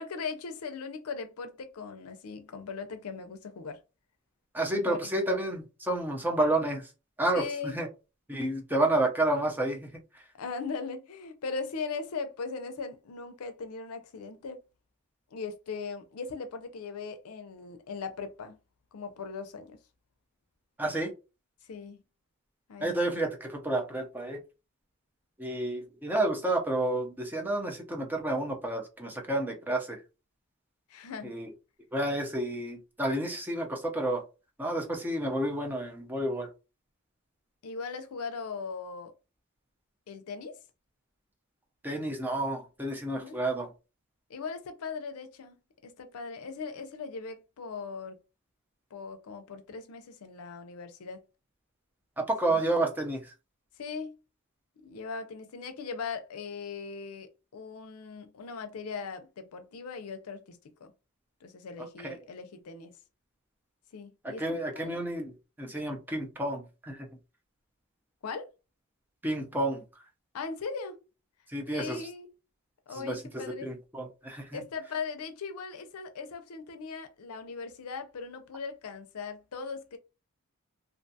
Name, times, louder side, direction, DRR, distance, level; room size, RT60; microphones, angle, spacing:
voice 1, 0.0-3.8 4.7-5.3 7.3-7.8 8.3-8.4 10.3-14.6 15.3-18.6 18.9-19.8 21.6-22.0 22.7-23.2 30.9-31.4 37.6-39.1 40.1-40.6 43.2-43.4 44.3-45.6 45.8-48.2 48.9-51.2 52.4-52.6 53.8-54.2 54.8-60.9 61.4-62.9 63.9-65.0 68.2-68.5 70.3-71.0 71.7-72.3 72.9-73.7 74.5-80.0, left 5 dB, 75° left, 0.5 m, -39 dB
voice 2, 4.5-6.9 7.2-7.9 8.3-9.9 20.8-21.1 22.8-24.4 25.4-30.0 31.2-31.5 31.9-34.2 34.6-36.5 41.8-43.7 52.2-53.3 62.0-62.2 64.2-65.3 65.6-67.1 69.2-69.8 71.5-72.0 72.9-73.2 73.6-74.6, right 1 dB, 10° right, 0.5 m, -30 dB
2.5 x 2.2 x 2.6 m
head